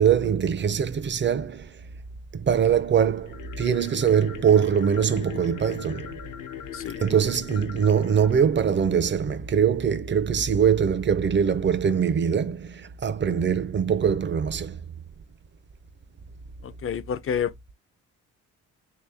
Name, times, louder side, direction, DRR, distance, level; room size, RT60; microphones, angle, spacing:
voice 1, 0.0-1.7 2.3-6.2 7.0-14.8, right 7 dB, 35° right, 0.6 m, -23 dB
sound 1, 3.1-9.4, left 9 dB, 70° left, 0.8 m, -40 dB
voice 2, 16.6-17.5, left 8 dB, 40° left, 0.5 m, -29 dB
3.3 x 3.0 x 3.3 m
cardioid pair, 75°, 33 cm